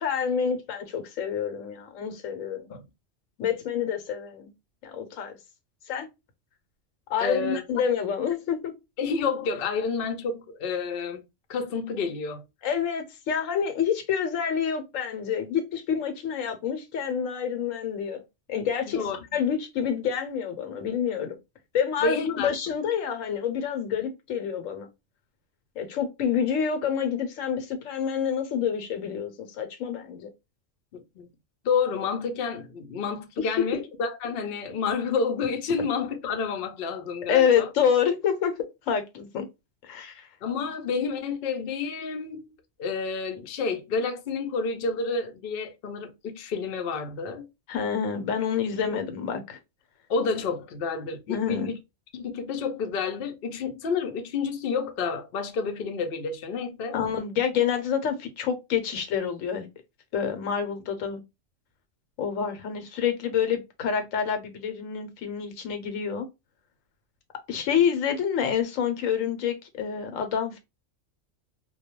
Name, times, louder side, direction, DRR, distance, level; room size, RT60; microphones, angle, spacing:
voice 1, 0.0-2.7 3.4-4.5 4.8-5.4 5.9-6.1 7.1-8.7 12.6-18.2 18.5-19.0 19.3-21.4 21.7-24.9 25.8-30.3 33.4-33.5 37.3-38.6 38.9-39.5 39.8-40.3 47.7-49.6 51.3-51.7 56.9-59.7 60.1-61.2 62.2-66.3 67.5-70.6, left 7 dB, 90° left, 1.0 m, -27 dB
voice 2, 7.2-7.6 9.0-11.2 11.5-12.4 18.9-19.2 22.0-22.5 30.9-31.3 31.6-37.7 40.4-42.5 42.8-47.5 48.9-49.0 50.1-51.8 52.1-57.0, left 5 dB, 60° left, 0.6 m, -29 dB
2.2 x 2.2 x 2.8 m
omnidirectional pair, 1.3 m